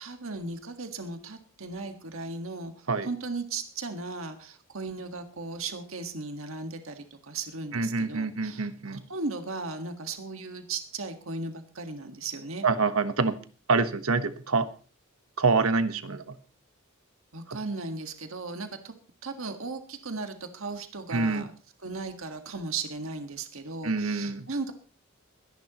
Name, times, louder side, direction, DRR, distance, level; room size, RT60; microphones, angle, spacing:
voice 1, 0.0-12.6 17.3-18.9 19.2-21.5 21.8-24.7, right 3 dB, 70° right, 6 dB, 1.6 m, -36 dB
voice 2, 7.7-9.0 12.6-13.4 13.7-14.7 15.4-16.3 21.1-21.5 23.8-24.5, right 4 dB, 85° right, 10 dB, 1.2 m, -26 dB
22.0 x 11.0 x 3.0 m, 0.36 s
head